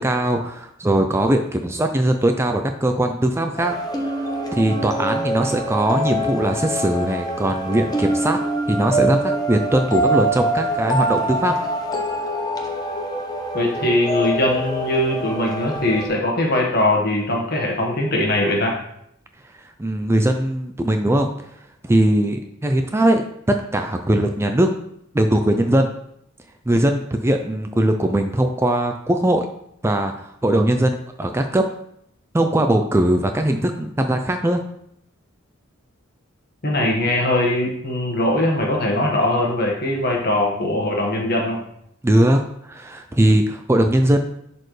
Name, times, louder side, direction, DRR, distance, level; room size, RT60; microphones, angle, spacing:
voice 1, 0.0-3.7 4.5-8.4 8.7-11.5 19.8-21.3 21.8-23.2 23.7-24.7 25.1-25.9 26.7-29.5 29.8-31.6 32.3-34.6 42.0-44.2, right 1 dB, 15° right, 5 dB, 0.4 m, -20 dB
sound 1, 3.6-16.1, right 1 dB, 20° left, 0.9 m, -25 dB
voice 2, 13.5-18.8 36.6-41.6, left 1 dB, 50° left, 0 dB, 1.5 m, -21 dB
11.0 x 4.3 x 3.2 m, 0.73 s
head